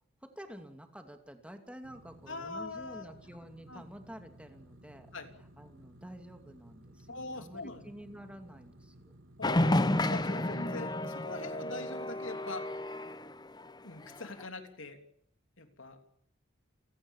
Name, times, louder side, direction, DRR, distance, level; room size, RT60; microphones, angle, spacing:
voice 1, 0.2-5.1 5.6-9.2, equal, 5° right, 6 dB, 2.6 m, -49 dB
sound 1, 1.8-11.6, right 1 dB, 85° right, 3.3 m, -57 dB
voice 2, 2.3-3.1 3.7-3.8 5.1-5.3 7.1-7.9 9.4-12.7 13.8-15.0 15.6-16.0, left 3 dB, 75° left, 7 dB, 3.1 m, -42 dB
sound 2, 9.4-13.7 14.2-14.5, left 1 dB, 20° left, 0.9 m, -31 dB
29.5 x 17.5 x 7.2 m, 0.73 s
head